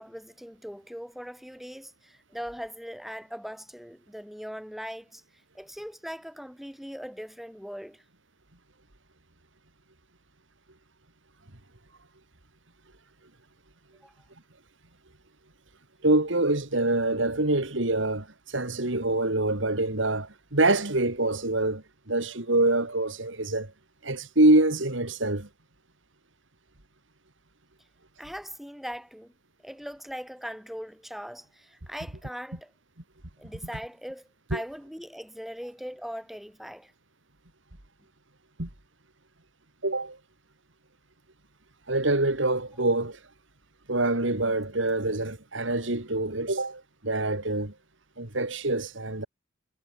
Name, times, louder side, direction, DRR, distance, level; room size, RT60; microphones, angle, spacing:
voice 1, 0.0-5.2 5.5-8.0 14.0-14.1 28.2-29.3 29.6-32.7 33.4-36.9, equal, ahead, 7.9 m, -40 dB
voice 2, 16.0-23.7 24.0-25.5 34.5-34.6 38.6-38.7 39.8-40.2 41.9-43.2 43.9-47.7 48.2-49.3, right 2 dB, 65° right, 3.0 m, -25 dB
head